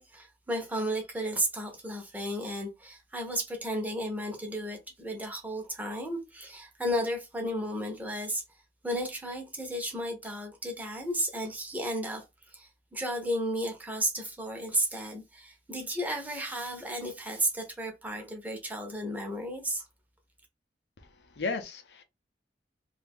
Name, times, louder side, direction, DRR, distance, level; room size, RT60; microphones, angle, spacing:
voice 1, 0.0-8.4 8.8-12.2 12.5-19.9, equal, 10° right, 0.8 m, -33 dB
voice 2, 21.0-22.0, left 4 dB, 70° left, 0.6 m, -35 dB
2.7 x 2.5 x 3.5 m
head